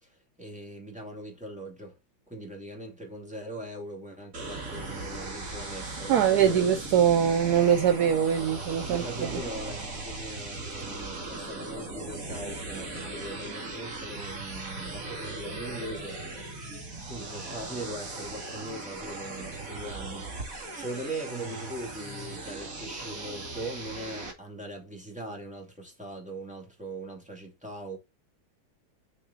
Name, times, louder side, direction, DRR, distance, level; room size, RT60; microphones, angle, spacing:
voice 1, 0.0-2.0 2.3-6.7 8.3-16.2 17.1-28.0, right 1 dB, 5° right, 2.4 m, -40 dB
sound 1, 4.3-24.3, right 2 dB, 40° right, 2.5 m, -38 dB
voice 2, 6.1-9.0, right 8 dB, 65° right, 1.0 m, -22 dB
6.5 x 5.4 x 4.1 m
omnidirectional pair, 2.3 m